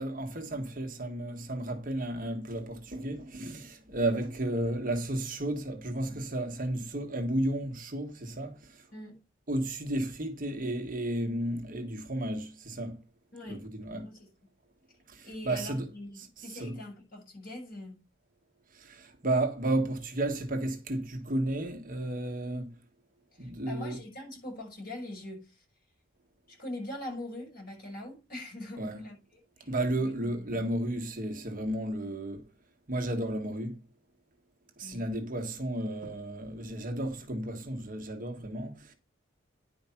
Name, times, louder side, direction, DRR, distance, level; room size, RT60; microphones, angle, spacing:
voice 1, 0.0-8.6 9.5-13.0 13.5-14.1 15.1-15.9 16.1-16.8 18.7-22.7 23.4-24.0 28.8-29.1 29.7-32.4 32.9-33.8 34.8-38.9, right 1 dB, 40° right, 1.5 m, -33 dB
voice 2, 8.9-9.2 13.3-13.6 13.9-14.3 15.2-18.0 23.4-25.6 26.5-29.7 30.0-30.7 34.8-35.1, left 1 dB, 45° left, 6.6 m, -43 dB
10.5 x 5.1 x 5.8 m
head